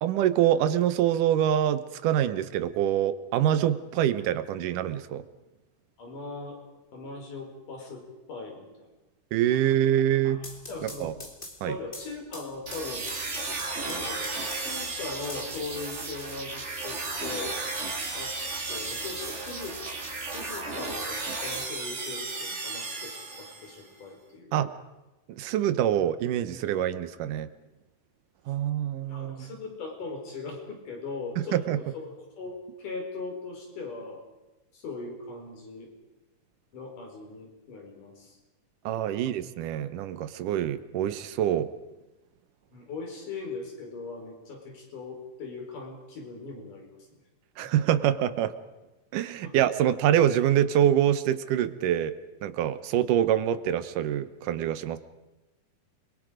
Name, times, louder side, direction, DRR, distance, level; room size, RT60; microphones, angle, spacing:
voice 1, 0.0-5.2 9.3-10.4 10.8-11.1 11.6-11.8 24.5-24.7 25.4-27.5 28.5-29.5 31.5-31.8 38.9-41.7 47.6-48.5 49.1-52.1 52.4-55.0, right 11 dB, 80° right, 13 dB, 2.5 m, -25 dB
voice 2, 6.0-6.6 6.9-8.0 8.3-8.7 9.6-9.7 10.2-11.1 11.7-13.1 13.8-17.6 18.1-18.4 18.7-19.8 20.2-24.5 29.1-31.6 31.9-34.2 34.7-35.9 36.7-38.4 39.1-39.3 42.7-47.2 49.4-49.5, left 3 dB, 75° left, 1 dB, 6.1 m, -39 dB
sound 1, 10.2-14.9 15.3-16.3, left 1 dB, 15° left, 2.1 m, -45 dB
sound 2, 12.7-23.8, right 3 dB, 25° right, 1.8 m, -34 dB
29.5 x 22.5 x 5.1 m, 1.1 s
omnidirectional pair, 3.7 m